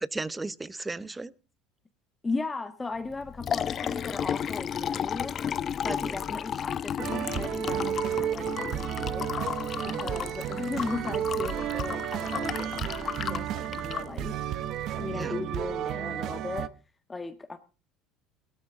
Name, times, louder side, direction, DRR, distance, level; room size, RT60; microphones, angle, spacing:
voice 1, 0.1-1.3 5.8-6.2 9.9-10.2 15.1-15.4, right 3 dB, 15° right, 0.9 m, -36 dB
voice 2, 2.2-5.4 5.8-9.3 9.8-14.4 15.0-16.7 17.1-17.6, left 3 dB, 15° left, 1.5 m, -37 dB
Liquid, 3.1-15.0, left 8 dB, 40° left, 0.7 m, -34 dB
sound 1, 6.5-12.4, equal, 80° left, 3.7 m, -56 dB
sound 2, 7.0-16.7, right 11 dB, 60° right, 0.8 m, -32 dB
17.5 x 13.0 x 3.8 m
supercardioid pair, 95°, 0 cm